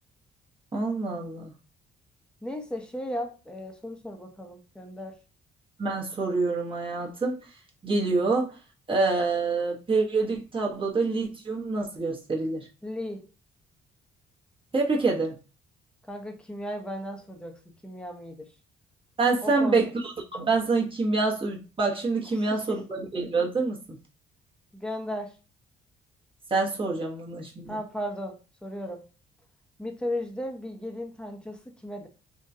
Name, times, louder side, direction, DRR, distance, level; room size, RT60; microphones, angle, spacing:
voice 1, 0.7-1.5 5.8-7.4 7.8-8.5 8.9-12.7 14.7-15.3 19.2-23.8 26.5-27.8, right 3 dB, 25° right, 0.9 m, -26 dB
voice 2, 2.4-5.1 12.8-13.3 16.1-18.5 19.4-19.9 22.4-22.8 24.7-25.4 27.7-29.0 29.8-32.1, left 1 dB, 5° left, 0.7 m, -36 dB
3.6 x 2.2 x 2.6 m
cardioid pair, 90°, 20 cm